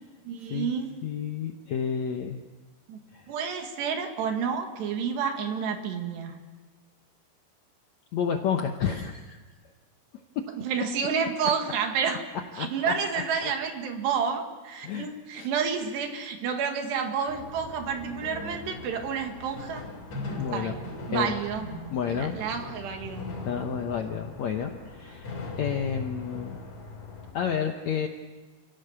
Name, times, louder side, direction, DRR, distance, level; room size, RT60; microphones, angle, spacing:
voice 1, 0.3-0.9 2.9-3.0 3.3-6.4 10.6-12.2 12.6-19.9 20.3-21.7 22.1-23.2, right 6 dB, 90° right, 4 dB, 4.1 m, -30 dB
voice 2, 1.0-2.4 3.1-3.2 8.1-9.4 10.3-10.4 12.6-12.9 13.4-13.5 14.8-15.5 20.4-20.7 21.1-21.4 21.9-22.4 23.4-26.6 27.3-28.1, left 7 dB, 80° left, 4 dB, 1.5 m, -30 dB
sound 1, 17.3-27.3, left 3 dB, 45° left, 4.7 m, -40 dB
28.5 x 17.0 x 6.9 m, 1.3 s
omnidirectional pair, 4.8 m